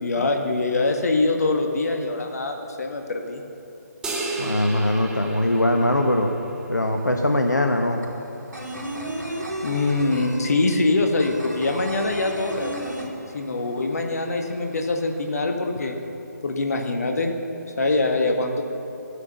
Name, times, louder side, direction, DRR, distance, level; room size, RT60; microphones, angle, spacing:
voice 1, 0.0-3.4 9.6-12.9 13.3-16.0 16.4-17.3 17.8-18.6, left 2 dB, 60° left, 3 dB, 1.7 m, -24 dB
sound 1, 4.0-6.6, right 2 dB, 5° right, 1.1 m, -32 dB
voice 2, 4.4-6.3 6.7-8.0, left 1 dB, 90° left, 3 dB, 1.1 m, -21 dB
sound 2, 6.8-6.9 7.1-13.7 14.0-14.1 14.4-15.2, right 1 dB, 80° right, 3.3 m, -33 dB
15.0 x 9.7 x 6.9 m, 2.8 s
figure-of-eight pair, 145°, 9 cm